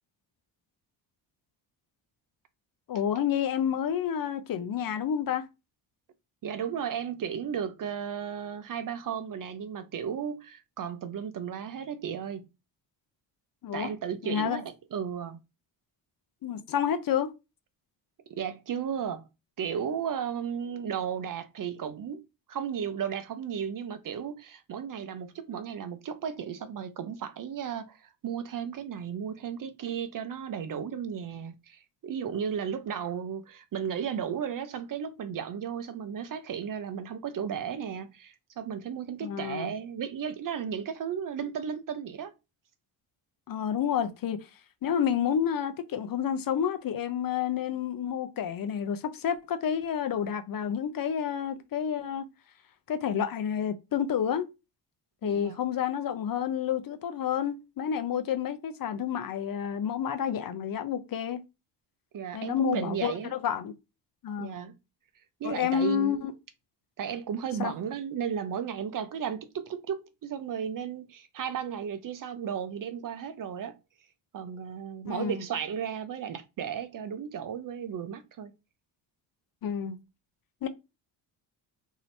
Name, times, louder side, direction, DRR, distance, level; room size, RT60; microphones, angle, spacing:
voice 1, 2.9-5.5 13.6-13.9 14.2-14.6 16.4-17.3 39.2-39.7 43.5-44.4 44.8-52.3 52.9-54.5 55.2-61.4 62.3-63.7 64.2-64.6 65.4-66.3 67.6-67.7 75.0-75.4 79.6-80.0 80.6-80.7, left 8 dB, 45° left, 0.6 m, -29 dB
voice 2, 6.4-12.5 13.7-15.4 18.3-19.3 19.6-22.2 22.5-42.3 55.2-55.6 62.1-63.3 64.4-64.8 65.4-66.3 67.0-73.8 74.3-78.5, right 8 dB, 45° right, 0.5 m, -34 dB
2.7 x 2.5 x 3.2 m
supercardioid pair, 70°, 48 cm